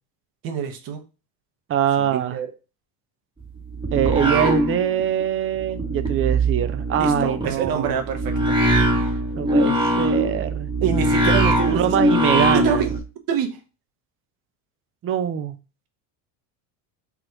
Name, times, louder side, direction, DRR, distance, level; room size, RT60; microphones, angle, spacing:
voice 1, 0.4-1.0 2.0-2.5 7.0-8.3 10.8-12.0 12.6-12.9 13.3-13.6, right 8 dB, 55° right, 1.0 m, -26 dB
voice 2, 1.7-2.4 3.9-8.0 9.4-10.7 11.7-12.8 15.0-15.6, right 10 dB, 30° right, 0.5 m, -23 dB
sound 1, 3.4-5.2 5.5-13.0, right 1 dB, 10° right, 1.0 m, -22 dB
3.5 x 2.5 x 4.5 m
supercardioid pair, 105°, 43 cm